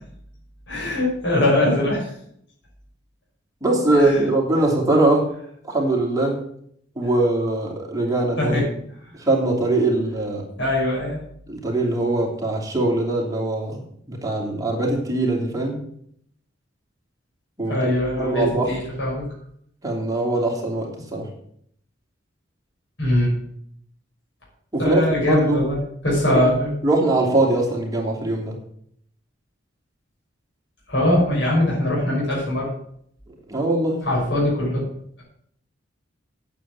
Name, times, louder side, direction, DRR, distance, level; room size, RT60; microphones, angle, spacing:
voice 1, 0.7-2.1 3.9-4.3 8.4-8.7 10.6-11.2 17.7-19.2 23.0-23.4 24.8-25.8 26.0-26.7 30.9-32.7 34.0-34.8, left 1 dB, 70° left, -4 dB, 6.2 m, -21 dB
voice 2, 3.6-5.3 5.7-6.4 7.0-8.5 9.3-10.4 11.5-15.8 17.6-18.7 19.8-21.3 24.7-25.6 26.8-28.5 33.5-34.0, right 2 dB, 20° right, 0 dB, 3.0 m, -22 dB
9.0 x 8.7 x 7.7 m, 0.67 s
head